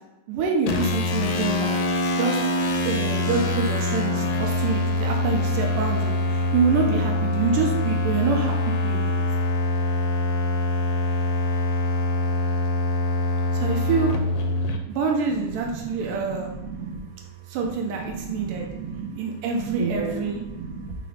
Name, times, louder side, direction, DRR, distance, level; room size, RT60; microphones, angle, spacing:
voice 1, 0.3-1.8 2.2-2.4 2.8-9.1 13.5-14.1 14.9-16.5 17.5-18.7 19.1-20.4, right 5 dB, 85° right, 1 dB, 2.3 m, -26 dB
sound 1, 0.7-14.8, left 2 dB, 75° left, 2.0 m, -24 dB
voice 2, 15.3-17.0 17.6-19.2 19.5-21.0, right 5 dB, 65° right, 1 dB, 1.7 m, -34 dB
6.0 x 3.8 x 4.9 m, 1.0 s
omnidirectional pair, 3.7 m